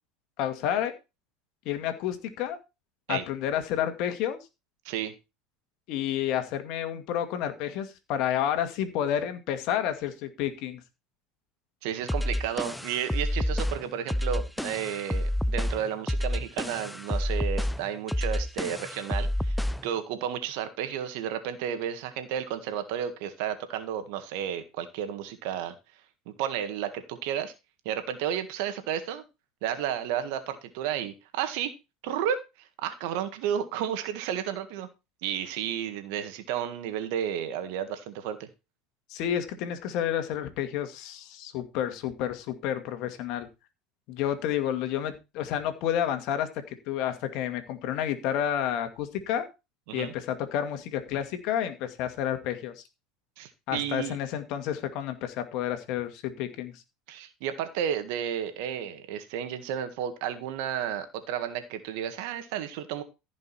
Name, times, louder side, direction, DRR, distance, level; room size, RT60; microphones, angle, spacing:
voice 1, 0.4-0.9 1.7-2.6 3.1-4.4 5.9-10.8 39.1-43.5 44.1-49.4 49.9-52.8 53.7-56.8, left 10 dB, 65° left, 8 dB, 2.1 m, -30 dB
voice 2, 11.8-25.8 26.3-27.5 27.9-29.2 29.6-31.7 32.0-34.9 35.2-38.5 49.9-50.1 53.4-54.2 57.1-63.0, right 9 dB, 70° right, 9 dB, 1.8 m, -32 dB
sound 1, 12.1-19.9, left 1 dB, 5° left, 0.6 m, -29 dB
14.5 x 5.4 x 4.3 m, 0.27 s
hypercardioid pair, 85°, 0 cm